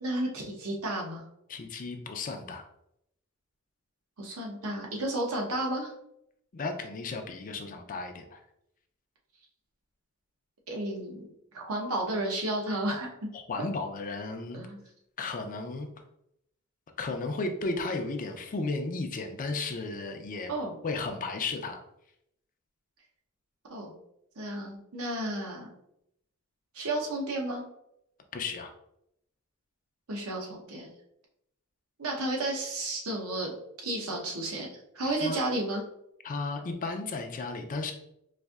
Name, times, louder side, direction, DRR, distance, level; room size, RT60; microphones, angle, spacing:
voice 1, 0.0-1.2 4.2-5.9 10.7-11.2 11.5-13.1 14.5-14.8 20.5-20.7 23.7-24.0 24.4-25.7 26.7-27.6 30.1-30.9 32.0-33.5 33.8-34.7 34.9-35.8, right 1 dB, 70° right, -1 dB, 0.8 m, -32 dB
voice 2, 1.5-2.6 6.5-8.4 13.3-14.6 15.2-15.9 17.0-20.5 20.8-21.8 28.3-28.7 35.2-35.4 36.2-37.9, left 3 dB, 40° left, 5 dB, 0.4 m, -34 dB
4.1 x 2.6 x 2.3 m, 0.77 s
head